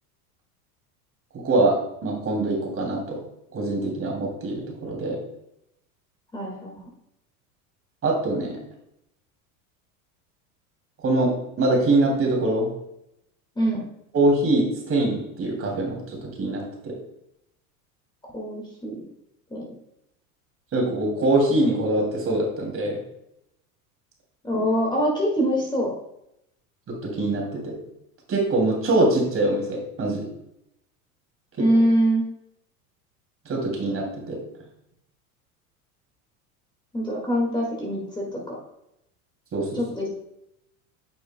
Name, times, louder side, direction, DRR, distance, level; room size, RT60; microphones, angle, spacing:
voice 1, 1.4-1.8 2.0-3.2 3.5-5.2 8.0-8.6 11.0-12.7 14.1-16.9 20.7-23.0 26.9-27.7 28.3-30.3 33.5-34.4 39.5-39.8, right 2 dB, 30° right, 0 dB, 2.8 m, -23 dB
voice 2, 6.3-6.8 13.6-13.8 18.3-19.0 19.5-19.7 24.4-25.9 31.6-32.2 36.9-38.6 39.7-40.1, equal, 10° left, -3 dB, 1.9 m, -24 dB
9.0 x 6.3 x 2.2 m, 0.81 s
hypercardioid pair, 90°, 43 cm